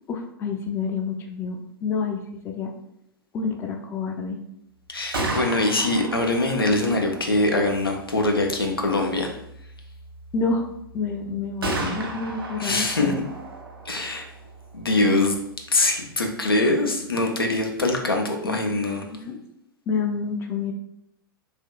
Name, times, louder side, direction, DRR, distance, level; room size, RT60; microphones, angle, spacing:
voice 1, 0.1-2.7 3.3-4.4 10.3-10.7 10.9-13.3 18.4-18.6 19.0-19.4 19.9-20.7, left 4 dB, 20° left, 3 dB, 0.4 m, -28 dB
voice 2, 4.9-9.4 12.6-13.1 13.9-14.2 14.7-15.3 15.7-19.0, left 2 dB, 85° left, 3 dB, 0.5 m, -23 dB
Gunshot gunfire, 4.9-18.7, right 2 dB, 80° right, 0.6 m, -37 dB
3.3 x 2.8 x 2.3 m, 0.78 s
figure-of-eight pair, 95°, 12 cm